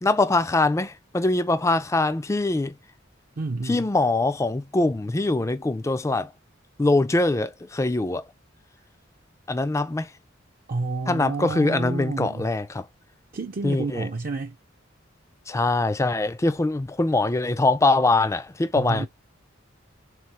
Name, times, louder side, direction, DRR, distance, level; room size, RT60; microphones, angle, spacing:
voice 1, 0.0-2.8 3.6-6.3 6.8-8.2 9.5-10.1 11.1-12.9 13.6-14.1 15.5-19.1, left 2 dB, 15° left, 0.4 m, -23 dB
voice 2, 3.4-3.9 10.7-12.5 13.3-14.6 18.7-19.1, right 3 dB, 45° right, 0.5 m, -30 dB
4.0 x 3.2 x 2.8 m
head